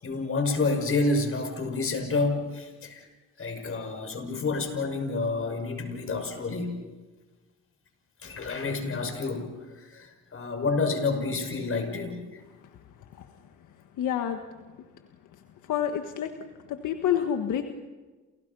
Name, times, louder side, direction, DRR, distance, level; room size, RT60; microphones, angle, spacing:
voice 1, 0.0-3.1 3.4-6.8 8.2-12.4, left 3 dB, 45° left, 6 dB, 6.0 m, -29 dB
voice 2, 14.0-14.4 15.7-16.3 16.7-17.6, left 9 dB, 80° left, 6 dB, 1.7 m, -27 dB
29.5 x 29.0 x 5.6 m, 1.2 s
cardioid pair, 90°, 30 cm